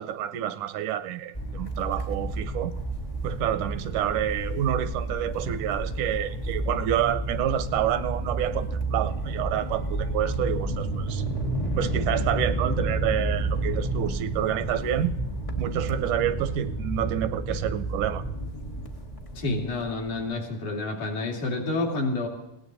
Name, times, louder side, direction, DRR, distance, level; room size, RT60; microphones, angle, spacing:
voice 1, 0.0-2.7 3.2-11.2 11.8-15.1 15.6-18.2, right 11 dB, 80° right, 13 dB, 2.2 m, -28 dB
sound 1, 1.3-20.3, right 2 dB, 45° left, 0.4 m, -30 dB
voice 2, 19.4-22.3, left 2 dB, 70° left, -1 dB, 4.4 m, -29 dB
20.5 x 17.5 x 4.0 m, 0.84 s
omnidirectional pair, 3.7 m